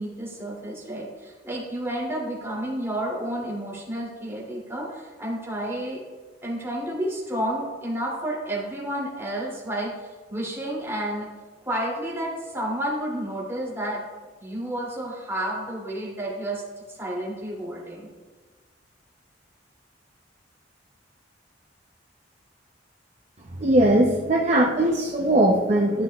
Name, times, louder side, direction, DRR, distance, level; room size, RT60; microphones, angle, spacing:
voice 1, 0.0-6.0 6.4-11.3 11.6-14.0 14.4-16.6 16.9-18.1, right 1 dB, 15° right, -5 dB, 2.6 m, -31 dB
voice 2, 23.6-26.0, right 1 dB, 35° right, -1 dB, 0.7 m, -20 dB
13.5 x 5.9 x 2.3 m, 1.3 s
head